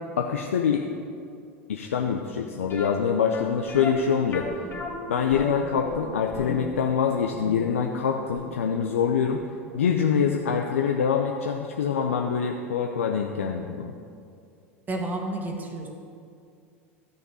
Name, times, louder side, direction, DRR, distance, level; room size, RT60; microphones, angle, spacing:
voice 1, 0.2-0.9 1.7-4.5 5.1-9.4 9.7-13.9, left 7 dB, 80° left, 2 dB, 0.5 m, -25 dB
sound 1, 2.7-9.6 9.8-9.9 10.5-10.6 10.9-11.0, left 3 dB, 30° left, 1.5 m, -37 dB
voice 2, 14.9-15.9, right 2 dB, 25° right, 2 dB, 1.5 m, -30 dB
12.0 x 6.6 x 4.8 m, 2.4 s
hypercardioid pair, 85°, 7 cm